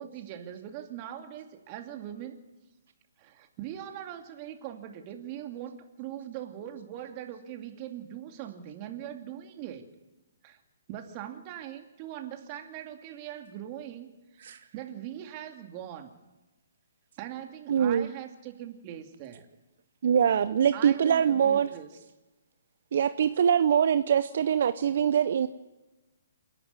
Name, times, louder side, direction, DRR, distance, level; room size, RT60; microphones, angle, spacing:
voice 1, 0.0-2.4 3.2-9.9 10.4-10.6 10.9-16.1 17.2-19.5 20.7-21.9, right 11 dB, 35° right, 5 dB, 2.5 m, -41 dB
voice 2, 17.7-18.1 20.0-21.7 22.9-25.5, right 8 dB, 55° right, 12 dB, 0.8 m, -23 dB
28.0 x 11.0 x 9.6 m, 1.1 s
figure-of-eight pair, 135°, 0 cm